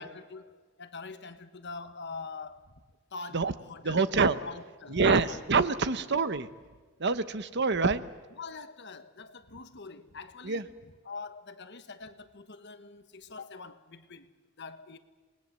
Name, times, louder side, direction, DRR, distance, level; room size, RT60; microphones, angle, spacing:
voice 1, 0.0-2.8 3.1-4.1 4.4-5.4 5.8-6.1 8.4-14.3 14.6-15.0, left 4 dB, 55° left, 1.3 m, -44 dB
voice 2, 3.8-4.4 4.9-6.5 7.0-8.0 10.5-10.6, right 4 dB, 50° right, 0.9 m, -26 dB
27.5 x 20.0 x 7.5 m
head